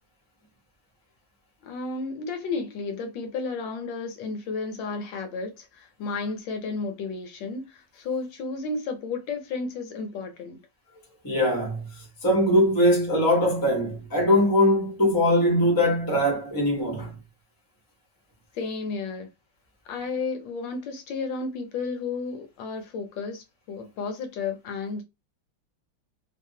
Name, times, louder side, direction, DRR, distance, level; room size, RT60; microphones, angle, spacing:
voice 1, 1.6-10.6 18.5-19.3 19.9-25.0, left 4 dB, 70° left, 1.4 m, -32 dB
voice 2, 11.2-17.2, left 1 dB, 25° left, 0.5 m, -22 dB
3.3 x 2.1 x 2.7 m
omnidirectional pair, 2.1 m